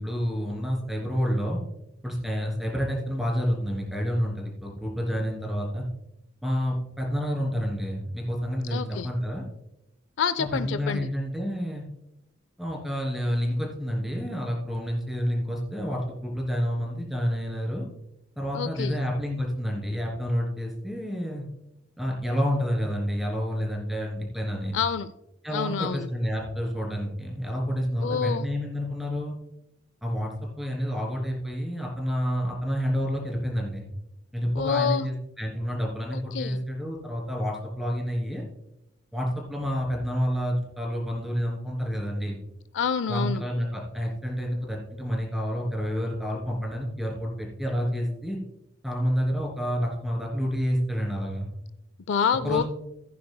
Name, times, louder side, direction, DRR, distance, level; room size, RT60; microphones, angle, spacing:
voice 1, 0.0-1.6 2.0-5.8 6.4-9.4 10.4-11.8 12.6-17.8 18.4-21.4 22.0-24.8 25.4-29.4 30.0-30.3 30.6-33.8 34.3-38.4 39.1-42.4 43.1-48.4 48.8-51.6 52.4-52.6, equal, ahead, -1 dB, 2.8 m, -29 dB
voice 2, 8.7-9.1 10.2-11.1 18.5-19.0 24.7-25.1 25.5-26.1 28.0-28.5 34.6-35.1 36.1-36.6 42.7-43.4 52.1-52.6, left 6 dB, 65° left, 13 dB, 0.4 m, -27 dB
15.5 x 9.5 x 2.2 m, 0.83 s
head